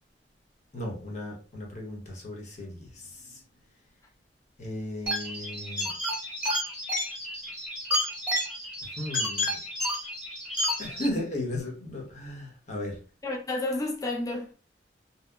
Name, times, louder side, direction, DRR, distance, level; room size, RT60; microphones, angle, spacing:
voice 1, 0.7-3.4 4.6-5.9 9.0-9.6 10.8-13.0, left 1 dB, 45° left, 0.8 m, -35 dB
sound 1, 5.1-11.1, left 1 dB, 10° right, 0.9 m, -31 dB
voice 2, 13.2-14.5, left 2 dB, 20° left, 0.4 m, -31 dB
2.7 x 2.0 x 2.2 m
head